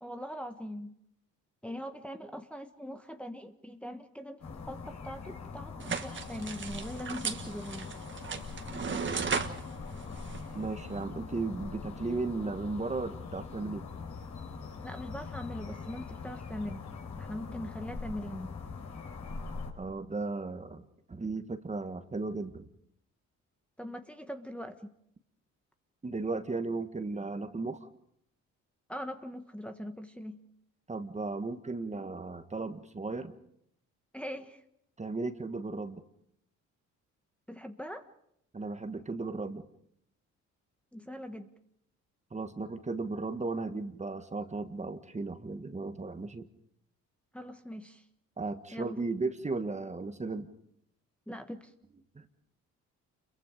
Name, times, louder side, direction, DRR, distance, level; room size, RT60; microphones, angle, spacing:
voice 1, 0.0-0.9 1.6-8.0 14.8-16.9 17.2-18.5 23.8-24.9 28.9-30.4 34.1-34.6 37.5-38.1 40.9-41.5 47.3-48.1 48.7-49.0 51.3-51.7, equal, 5° left, 5 dB, 1.3 m, -41 dB
sound 1, 4.4-19.7, left 4 dB, 65° left, 5.7 m, -42 dB
sound 2, 5.8-11.0, right 5 dB, 40° right, 1.7 m, -37 dB
voice 2, 10.5-13.8 19.8-22.7 26.0-27.8 30.9-33.3 35.0-36.0 38.5-39.6 42.3-46.5 48.4-50.5 52.1-52.3, right 3 dB, 25° right, 9 dB, 1.5 m, -35 dB
28.5 x 23.0 x 5.1 m, 0.74 s
cardioid pair, 90°, 30 cm